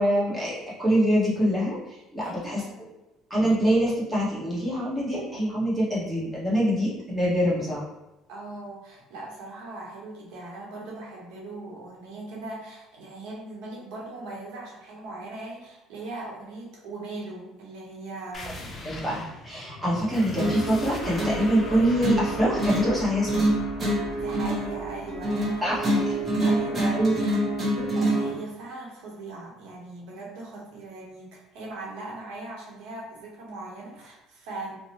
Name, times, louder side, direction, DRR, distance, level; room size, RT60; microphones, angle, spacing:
voice 1, 0.0-2.9 3.3-7.8 18.4-18.5 18.8-23.5 25.6-26.0 26.9-27.1 27.8-27.9, equal, 5° right, -8 dB, 1.0 m, -25 dB
voice 2, 2.2-2.8 8.3-18.6 24.1-26.1 26.4-27.4 27.9-34.8, right 2 dB, 80° right, -3 dB, 0.8 m, -39 dB
sound 1, 18.3-27.6, left 1 dB, 30° left, 0.5 m, -40 dB
sound 2, 20.4-28.4, right 1 dB, 30° right, 0.7 m, -27 dB
2.7 x 2.0 x 2.8 m, 0.99 s
cardioid pair, 115°, 0 cm